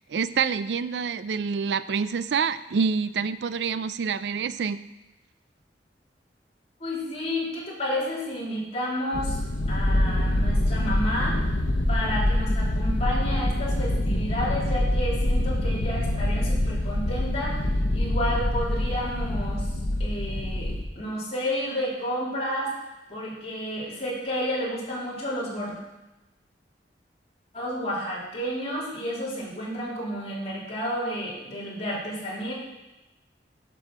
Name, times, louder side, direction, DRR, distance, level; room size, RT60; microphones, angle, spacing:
voice 1, 0.1-4.8, right 6 dB, 70° right, 15 dB, 0.4 m, -27 dB
voice 2, 6.8-9.4 9.7-11.4 11.9-17.6 17.9-19.7 20.0-22.7 23.1-25.7 27.5-32.5, equal, 35° left, -5 dB, 3.2 m, -31 dB
sound 1, 9.1-20.8, left 1 dB, 80° left, 1.1 m, -25 dB
11.0 x 6.3 x 5.8 m, 1.0 s
head